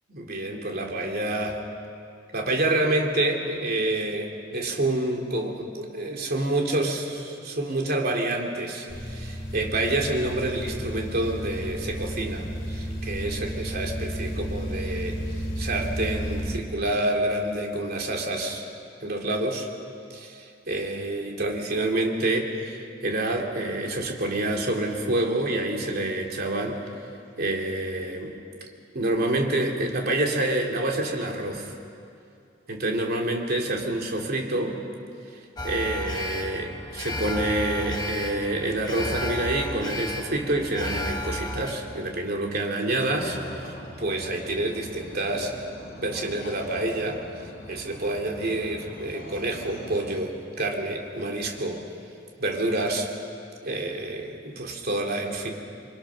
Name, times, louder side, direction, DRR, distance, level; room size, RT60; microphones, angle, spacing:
voice 1, 0.1-1.6 2.3-18.7 19.0-19.7 20.1-26.8 27.4-28.3 28.9-31.7 32.7-34.8 35.3-45.6 46.0-51.8 52.4-53.1 53.6-55.5, right 1 dB, 55° right, 1 dB, 3.0 m, -28 dB
sound 1, 8.9-16.6, equal, 80° left, 3.2 m, -32 dB
Alarm, 35.6-41.7, left 1 dB, 20° left, 1.6 m, -33 dB
sound 2, 43.1-50.2, equal, 55° left, 6.8 m, -43 dB
29.0 x 24.0 x 6.4 m, 2.5 s
head